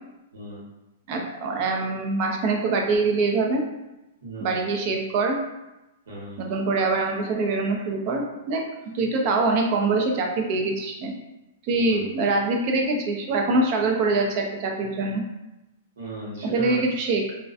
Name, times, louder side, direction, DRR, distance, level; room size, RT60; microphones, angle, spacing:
voice 1, 0.3-0.6 4.2-4.6 6.1-6.4 11.8-12.1 16.0-16.9, right 1 dB, 80° right, -5 dB, 1.1 m, -37 dB
voice 2, 1.1-3.6 4.4-5.4 6.4-8.6 8.9-11.1 11.6-15.2 16.5-17.4, right 3 dB, 40° right, 2 dB, 0.4 m, -24 dB
2.3 x 2.2 x 2.5 m, 0.97 s
hypercardioid pair, 150°, 0 cm